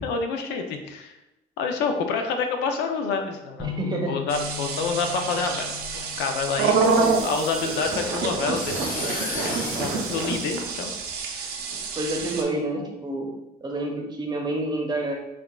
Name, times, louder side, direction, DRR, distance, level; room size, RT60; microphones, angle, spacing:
voice 1, 0.0-1.1 1.6-3.7 4.1-10.9 11.4-11.5, left 5 dB, 90° left, 5 dB, 0.5 m, -28 dB
sound 1, 3.6-7.6, left 11 dB, 5° left, 1.0 m, -38 dB
voice 2, 3.6-4.1 12.0-13.3 13.6-15.1, right 2 dB, 25° right, 1 dB, 0.8 m, -28 dB
sound 2, 4.3-12.4, right 4 dB, 70° right, 0.6 m, -27 dB
sound 3, 6.8-11.2, left 2 dB, 55° left, 1.1 m, -37 dB
5.7 x 2.4 x 2.3 m, 0.92 s
cardioid pair, 110°, 17 cm